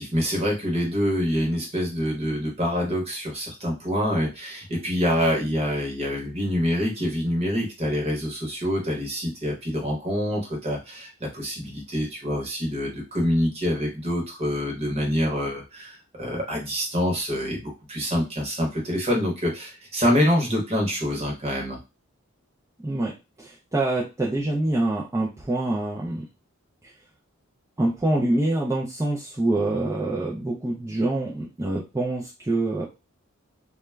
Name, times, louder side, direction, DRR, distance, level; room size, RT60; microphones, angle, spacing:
voice 1, 0.0-21.8, equal, 30° right, 0 dB, 0.8 m, -26 dB
voice 2, 23.4-26.2 27.8-32.9, right 2 dB, 15° right, -4 dB, 0.3 m, -25 dB
2.1 x 2.0 x 3.3 m, 0.27 s
head